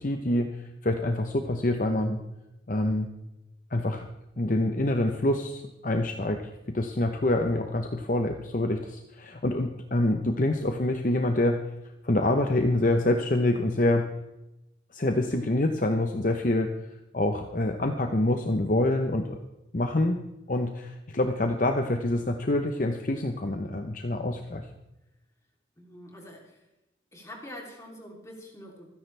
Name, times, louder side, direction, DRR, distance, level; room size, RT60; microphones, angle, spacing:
voice 1, 0.0-2.2 2.7-3.1 3.7-4.0 4.4-6.4 6.7-11.6 12.0-14.1 14.9-16.7 17.1-19.4 19.7-20.2 20.5-24.7, left 1 dB, 45° left, 5 dB, 0.9 m, -26 dB
voice 2, 25.8-26.7 27.1-28.9, left 1 dB, 15° left, -1 dB, 3.2 m, -45 dB
26.5 x 10.5 x 3.4 m, 0.94 s
head